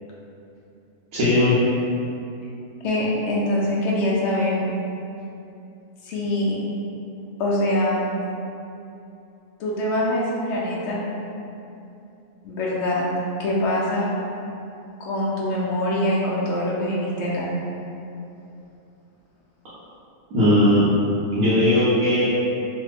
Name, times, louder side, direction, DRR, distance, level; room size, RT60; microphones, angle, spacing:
voice 1, 1.1-1.6 20.3-20.8 21.3-22.2, left 1 dB, 75° right, -12 dB, 1.2 m, -18 dB
voice 2, 2.8-4.6 6.0-6.6 7.4-8.0 9.6-11.0 12.4-13.1 13.4-14.1 15.0-17.5, left 1 dB, 65° left, -5 dB, 0.8 m, -24 dB
3.2 x 2.1 x 3.3 m, 2.7 s
omnidirectional pair, 1.6 m